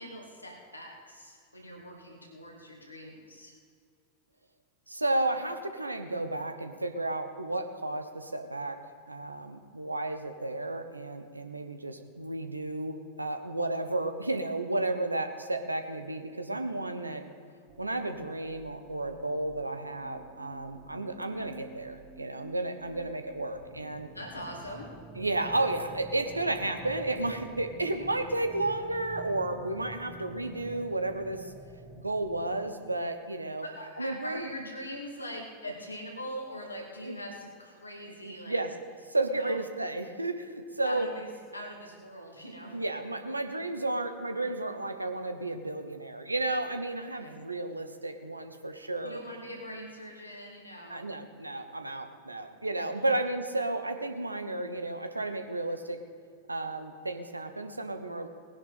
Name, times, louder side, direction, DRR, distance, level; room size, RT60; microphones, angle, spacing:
voice 1, 0.0-3.6 24.1-24.9 33.6-38.6 39.3-39.6 40.8-42.8 47.0-47.3 49.0-51.1 52.9-53.2, equal, 85° left, 0 dB, 2.6 m, -42 dB
voice 2, 4.9-8.8 9.1-17.2 17.8-24.1 25.2-31.5 32.0-33.7 34.0-34.5 37.0-37.2 38.2-38.7 39.1-41.1 42.7-49.2 50.9-56.0 56.5-58.3, right 2 dB, 85° right, 7 dB, 1.1 m, -32 dB
sound 1, 17.7-32.8, right 2 dB, 10° right, 1.4 m, -49 dB
19.5 x 10.5 x 4.3 m, 2.2 s
figure-of-eight pair, 90°, 0 cm